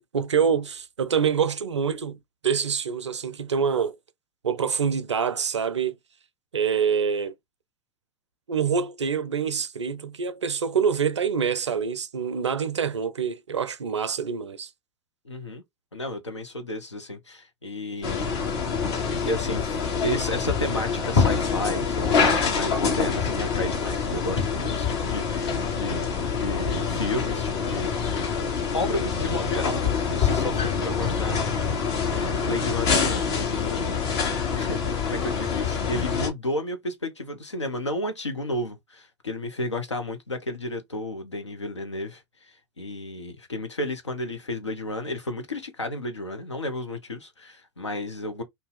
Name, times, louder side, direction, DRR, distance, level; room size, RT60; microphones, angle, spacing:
voice 1, 0.0-2.2 2.4-4.0 4.4-6.0 6.5-7.3 8.5-14.7, right 6 dB, 85° right, 0.4 m, -26 dB
voice 2, 15.2-15.6 15.9-18.4 19.2-19.6 20.0-28.4 28.7-31.7 32.1-33.9 34.5-48.4, left 1 dB, 90° left, 0.8 m, -32 dB
sound 1, 18.0-36.3, left 5 dB, 60° left, 1.3 m, -26 dB
2.6 x 2.3 x 3.8 m
figure-of-eight pair, 85°, 15 cm